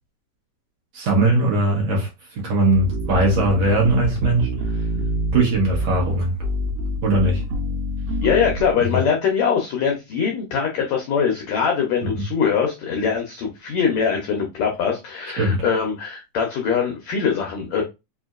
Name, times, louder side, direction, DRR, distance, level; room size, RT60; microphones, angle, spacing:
voice 1, 0.9-2.1 2.4-4.6 5.3-6.3 7.0-7.4 8.9-9.0 12.1-12.2 15.4-15.6, right 2 dB, 60° right, 1.9 m, -19 dB
sound 1, 2.7-8.7, right 1 dB, 90° right, 2.5 m, -26 dB
voice 2, 8.2-17.8, left 6 dB, 85° left, 1.5 m, -22 dB
5.4 x 2.6 x 2.4 m
omnidirectional pair, 4.1 m